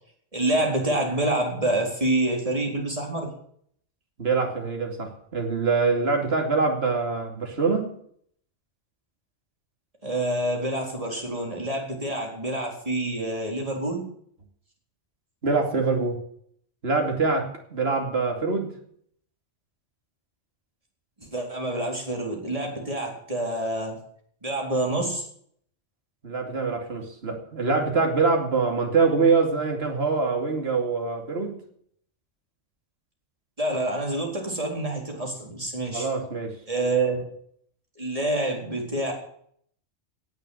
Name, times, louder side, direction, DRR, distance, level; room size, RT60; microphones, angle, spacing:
voice 1, 0.3-3.3 10.0-14.0 21.2-24.0 24.4-25.2 33.6-36.1 36.7-37.2 38.0-39.1, right 1 dB, 30° right, 0 dB, 4.2 m, -27 dB
voice 2, 4.2-7.9 15.4-16.2 16.8-18.7 26.2-31.6 35.9-36.5, right 4 dB, 55° right, 3 dB, 2.7 m, -24 dB
17.5 x 6.7 x 9.5 m, 0.64 s
omnidirectional pair, 1.3 m